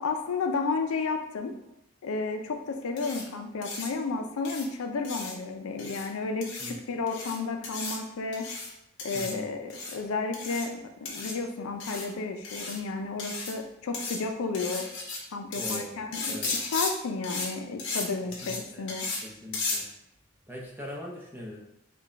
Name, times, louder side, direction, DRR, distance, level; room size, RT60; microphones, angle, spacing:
voice 1, 0.0-1.6 2.0-8.5 9.0-14.9 15.3-19.1, left 4 dB, 80° left, 5 dB, 0.5 m, -32 dB
sound 1, 3.0-3.2 3.6-3.9 4.5-4.6 5.0-5.3 5.8-6.1 6.4-6.7 7.1-7.4 7.6-8.0 8.3-8.7 9.0-9.3 9.7-10.0 10.3-10.7 11.1-11.3 11.8-12.1 12.4-12.8 13.2-13.6 13.9-14.2 14.5-15.2 15.5-15.8 16.1-16.9 17.2-17.5 17.8-18.0 18.3-18.6 18.9-19.2 19.5-19.8, left 3 dB, 60° left, 1.0 m, -34 dB
voice 2, 9.1-9.5 15.5-16.5 18.2-18.9 19.2-19.9 20.5-21.6, left 1 dB, 10° right, -2 dB, 0.7 m, -41 dB
5.2 x 2.3 x 3.9 m, 0.86 s
head